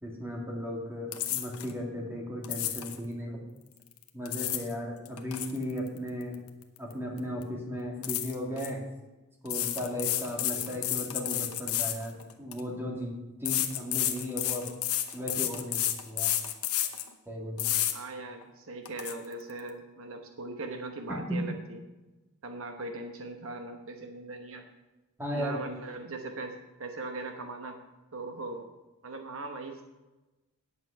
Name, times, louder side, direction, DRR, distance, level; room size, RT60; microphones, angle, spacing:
voice 1, 0.0-3.5 4.1-6.4 6.8-8.9 9.4-14.7 15.1-16.3 17.3-17.7 21.1-21.4 25.2-25.6, equal, 10° right, -2 dB, 2.1 m, -36 dB
sound 1, 1.1-1.7 2.4-3.0 4.0-4.7 5.1-6.9 7.2-7.4 8.0-8.7 9.5-12.6 13.5-17.1 17.6-17.9 18.4-18.5 18.9-19.1, left 12 dB, 85° left, 1.0 m, -31 dB
voice 2, 17.9-21.8 22.4-24.6 25.3-26.5 26.8-27.8 28.1-28.7 29.0-29.8, right 2 dB, 65° right, 5 dB, 1.0 m, -40 dB
9.5 x 8.2 x 5.7 m, 1.1 s
head